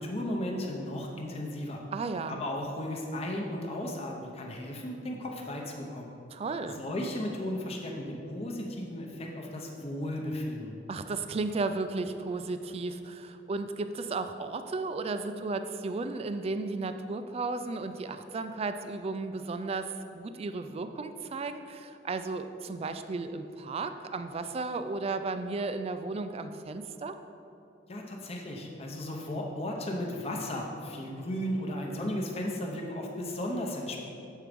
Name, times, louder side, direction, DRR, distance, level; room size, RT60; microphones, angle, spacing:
voice 1, 0.0-1.8 2.3-6.1 6.7-10.8 27.9-34.0, left 1 dB, 35° left, 0 dB, 0.8 m, -35 dB
voice 2, 1.9-2.4 6.3-6.8 10.9-27.2, right 3 dB, 35° right, 9 dB, 0.3 m, -34 dB
7.2 x 4.6 x 5.1 m, 2.8 s
head